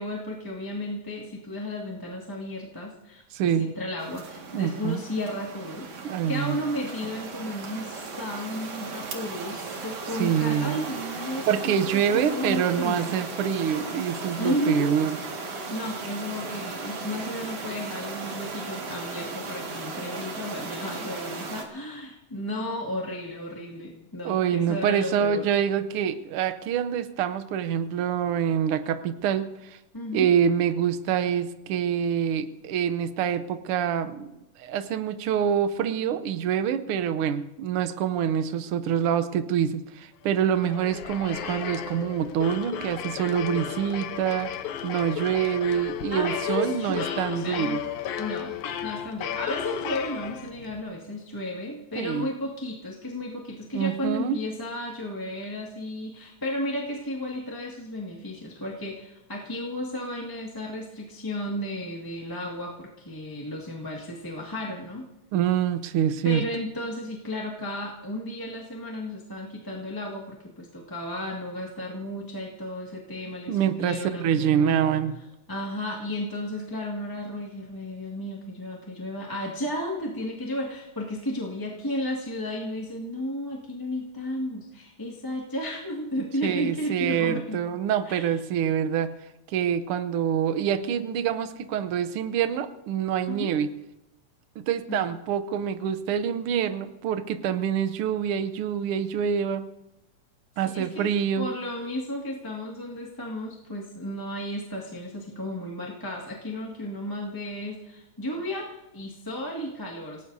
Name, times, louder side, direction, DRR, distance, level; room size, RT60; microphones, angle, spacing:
voice 1, 0.0-5.9 6.2-11.5 12.1-13.2 14.4-14.9 15.7-25.5 29.9-30.3 46.1-47.8 48.2-65.0 66.2-75.0 75.5-87.6 88.1-88.3 93.3-93.5 94.9-95.0 100.7-110.2, left 1 dB, 10° left, -3 dB, 1.3 m, -33 dB
voice 2, 3.3-3.7 4.5-5.0 6.0-6.6 10.2-10.9 11.5-15.2 24.2-29.8 30.1-34.3 34.6-44.5 44.8-47.8 52.0-52.3 53.7-54.4 65.3-66.4 73.5-75.1 86.4-89.1 89.5-93.7 94.6-99.6 100.6-101.5, right 8 dB, 75° right, 11 dB, 1.3 m, -26 dB
sound 1, 4.0-21.6, right 4 dB, 60° right, 2.9 m, -36 dB
sound 2, 40.4-50.8, left 10 dB, 80° left, 2.3 m, -34 dB
28.0 x 18.0 x 2.7 m, 0.96 s
omnidirectional pair, 3.3 m